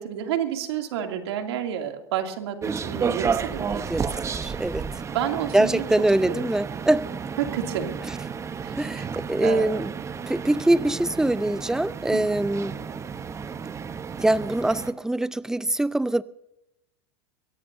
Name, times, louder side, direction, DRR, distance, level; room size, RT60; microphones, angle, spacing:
voice 1, 0.0-3.8 5.1-5.8 6.2-6.4 7.4-8.0 8.6-8.8 9.4-9.8 12.1-12.3, right 9 dB, 80° right, 2.6 m, -29 dB
sound 1, 2.6-14.9, right 6 dB, 20° right, 0.9 m, -32 dB
voice 2, 4.4-4.9 5.5-7.1 8.8-9.9 10.3-12.8 14.2-16.2, right 1 dB, 5° right, 0.5 m, -23 dB
23.0 x 17.5 x 2.7 m
supercardioid pair, 120°, 14 cm